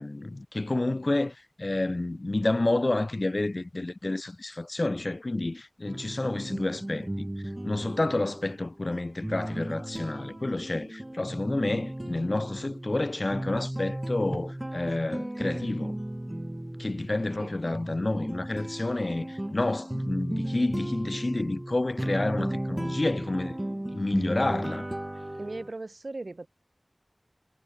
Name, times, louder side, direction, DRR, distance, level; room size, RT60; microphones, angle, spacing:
voice 1, 0.0-7.3 7.6-16.0 16.8-23.6 23.9-24.9, left 2 dB, 60° left, 0.8 m, -29 dB
sound 1, 5.9-25.7, right 1 dB, 25° right, 1.0 m, -35 dB
voice 2, 25.3-26.5, right 2 dB, 80° right, 3.1 m, -38 dB
wide cardioid pair, 45°, 0 cm